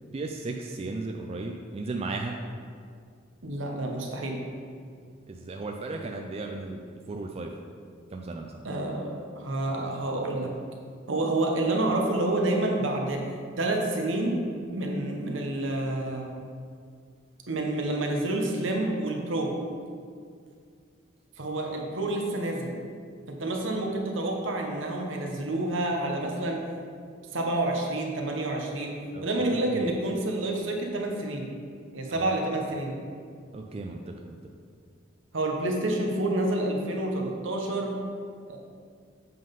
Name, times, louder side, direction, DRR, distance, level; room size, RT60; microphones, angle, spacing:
voice 1, 0.1-2.4 5.3-7.5 8.1-8.7 29.1-30.0 32.1-32.3 33.5-34.4, right 3 dB, 30° right, 2 dB, 0.4 m, -36 dB
voice 2, 3.4-4.4 8.6-10.5 11.1-13.3 13.6-14.4 14.7-16.3 17.5-19.5 21.4-22.7 23.3-26.7 27.3-31.5 31.9-32.9 35.3-38.0 38.5-38.6, right 2 dB, 75° right, 1 dB, 1.0 m, -28 dB
7.7 x 3.8 x 5.3 m, 2.2 s
head